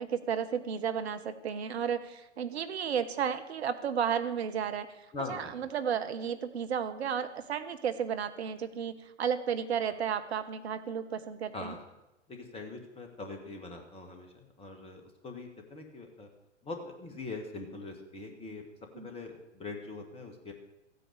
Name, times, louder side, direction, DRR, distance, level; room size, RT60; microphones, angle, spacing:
voice 1, 0.0-4.9 5.3-11.7 18.9-19.1, right 7 dB, 60° right, 9 dB, 1.2 m, -33 dB
voice 2, 5.1-5.5 11.5-11.8 12.3-16.3 16.6-18.6 19.0-20.5, left 3 dB, 15° left, 4 dB, 2.1 m, -42 dB
14.5 x 9.4 x 6.7 m, 0.92 s
figure-of-eight pair, 105°, 37 cm